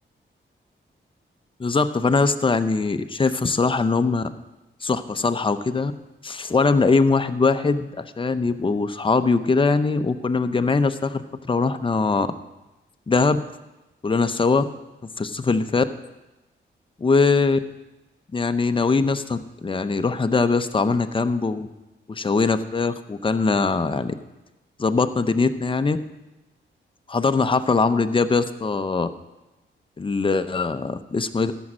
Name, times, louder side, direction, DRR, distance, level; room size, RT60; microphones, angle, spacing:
voice 1, 1.6-4.3 4.8-5.9 6.2-12.3 13.1-13.4 14.0-14.6 15.0-15.9 17.0-17.6 18.3-21.7 22.1-24.1 24.8-26.0 27.1-29.1 30.0-31.5, left 4 dB, 25° left, 9 dB, 0.6 m, -21 dB
14.0 x 6.3 x 6.1 m, 1.0 s
wide cardioid pair, 100°, 20 cm